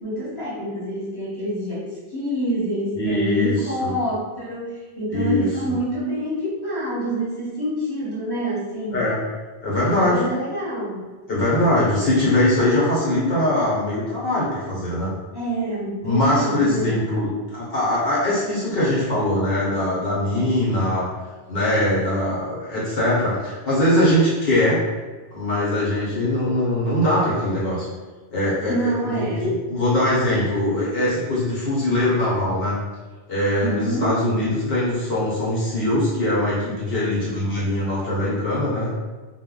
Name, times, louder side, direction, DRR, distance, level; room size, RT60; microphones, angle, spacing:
voice 1, 0.0-9.1 9.8-11.1 15.3-16.9 28.7-29.5 33.6-34.2, right 1 dB, 25° left, -10 dB, 0.9 m, -27 dB
voice 2, 2.9-4.0 5.1-5.7 8.9-9.2 9.6-10.3 11.3-15.1 16.0-21.1 21.5-24.8 25.3-27.9 28.3-32.8 33.3-38.9, left 1 dB, 60° left, -7 dB, 1.0 m, -22 dB
2.1 x 2.1 x 3.6 m, 1.3 s
omnidirectional pair, 1.1 m